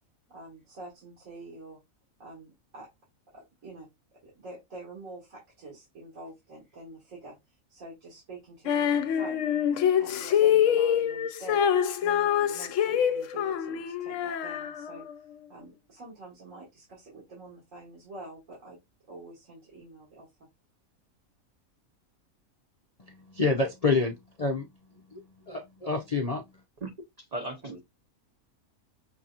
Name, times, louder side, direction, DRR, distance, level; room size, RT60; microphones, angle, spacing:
voice 1, 0.3-1.8 2.2-2.9 3.3-3.9 4.2-9.5 9.9-11.7 12.0-15.0 15.5-18.8 19.1-20.3, right 2 dB, 65° right, 2.2 m, -46 dB
Female singing, 8.7-15.1, left 9 dB, 70° left, 0.9 m, -25 dB
voice 2, 23.1-24.7 25.1-26.4, left 3 dB, 45° left, 0.5 m, -28 dB
voice 3, 27.2-27.8, right 2 dB, 45° right, 0.5 m, -36 dB
5.9 x 2.8 x 2.4 m
omnidirectional pair, 1.5 m